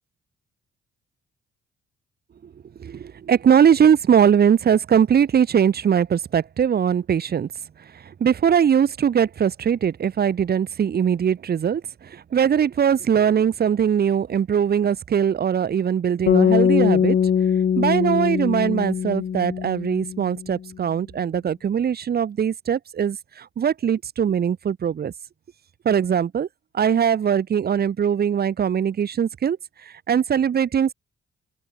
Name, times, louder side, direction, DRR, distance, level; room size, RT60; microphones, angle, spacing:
voice 1, 2.8-7.5 7.9-17.2 17.8-25.1 25.8-26.5 26.7-29.6 29.8-30.9, right 8 dB, 50° right, 2.9 m, -21 dB
sound 1, 16.3-20.5, left 8 dB, 50° left, 1.8 m, -21 dB
open air
cardioid pair, 90°, 20 cm